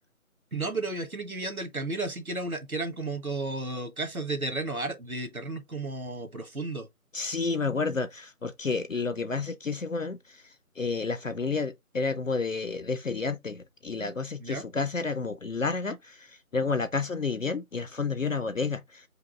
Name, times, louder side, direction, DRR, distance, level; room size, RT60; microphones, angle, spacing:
voice 1, 0.5-6.9 14.4-14.6, right 2 dB, 75° right, 1.4 m, -33 dB
voice 2, 7.1-10.2 10.8-16.3 16.5-19.0, left 4 dB, 65° left, 0.6 m, -30 dB
5.0 x 2.3 x 4.5 m
figure-of-eight pair, 175°, 43 cm